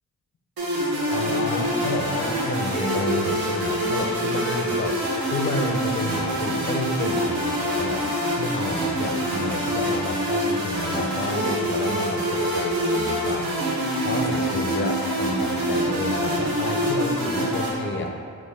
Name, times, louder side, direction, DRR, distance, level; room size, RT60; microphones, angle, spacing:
sound 1, 0.6-17.7, right 1 dB, 85° right, 1.0 m, -25 dB
sound 2, 0.8-15.7, right 1 dB, 35° right, 0.9 m, -40 dB
voice 1, 1.1-8.1 8.4-13.5 14.0-18.1, left 2 dB, 35° left, 3 dB, 0.4 m, -30 dB
4.4 x 2.9 x 3.4 m, 2.2 s
wide cardioid pair, 100°, 35 cm